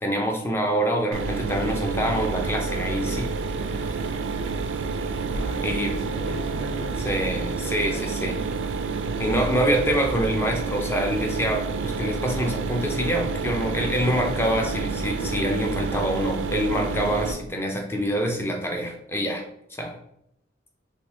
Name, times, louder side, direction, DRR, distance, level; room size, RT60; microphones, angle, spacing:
voice 1, 0.0-3.3 3.7-4.1 5.6-5.9 7.1-8.3 9.2-19.4 19.8-20.0, equal, 15° left, 2 dB, 0.4 m, -26 dB
Mechanisms, 1.1-17.3, right 4 dB, 90° right, 0.3 m, -29 dB
voice 2, 5.3-7.2 7.6-8.6, equal, 60° left, -2 dB, 0.8 m, -39 dB
3.5 x 2.6 x 2.6 m, 0.75 s
head